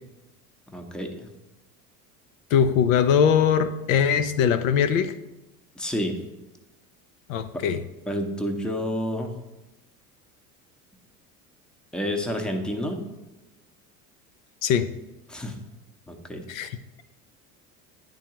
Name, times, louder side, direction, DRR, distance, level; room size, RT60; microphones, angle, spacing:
voice 1, 0.7-1.3 5.8-6.1 8.1-9.3 11.9-13.0 15.3-15.6 16.1-16.4, equal, ahead, 4 dB, 0.7 m, -29 dB
voice 2, 2.5-5.1 7.3-7.8 14.6-14.9 16.5-17.0, left 7 dB, 60° left, 10 dB, 0.5 m, -21 dB
9.9 x 3.8 x 2.9 m, 1.0 s
figure-of-eight pair, 70°, 46 cm